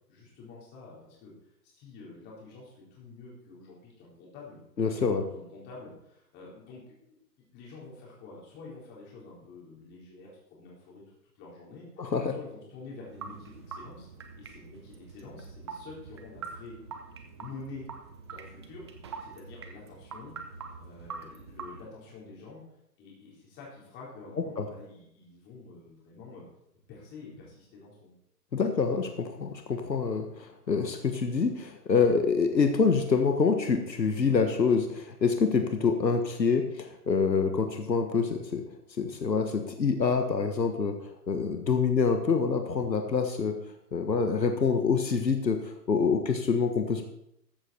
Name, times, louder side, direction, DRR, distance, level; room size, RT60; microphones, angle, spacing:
voice 1, 0.1-1.3 1.6-4.6 4.9-7.2 7.5-11.0 11.3-14.1 14.4-16.8 17.3-17.8 18.3-18.8 19.2-20.3 20.8-22.6 23.0-26.4 26.9-28.2, left 3 dB, 20° left, -4 dB, 4.5 m, -48 dB
voice 2, 4.8-5.2 12.0-12.3 24.6-24.7 28.5-38.6 39.0-40.9 41.3-43.6 43.9-47.0, left 5 dB, 90° left, 6 dB, 1.6 m, -26 dB
sound 1, 13.1-21.8, right 5 dB, 15° right, 0.6 m, -44 dB
14.0 x 7.8 x 4.4 m, 0.77 s
hypercardioid pair, 140°, 49 cm